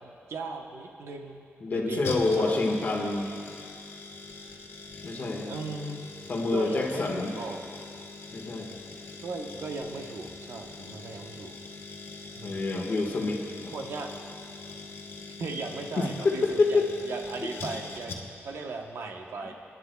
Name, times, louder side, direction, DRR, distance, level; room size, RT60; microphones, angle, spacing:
voice 1, 0.0-1.4 1.7-2.6 5.5-6.1 6.5-7.6 9.2-11.5 12.4-12.8 13.7-14.1 15.4-19.5, right 3 dB, 70° right, 3 dB, 1.0 m, -37 dB
voice 2, 1.6-3.3 5.0-5.7 6.3-7.3 8.3-8.7 10.8-10.9 11.2-11.3 12.4-13.7 16.0-16.9 17.4-17.5, left 3 dB, 40° left, 1 dB, 1.4 m, -27 dB
sound 1, 2.0-18.5 18.8-18.9, left 3 dB, 75° left, 1.4 m, -43 dB
28.0 x 10.5 x 2.3 m, 2.4 s
wide cardioid pair, 165°, 5 cm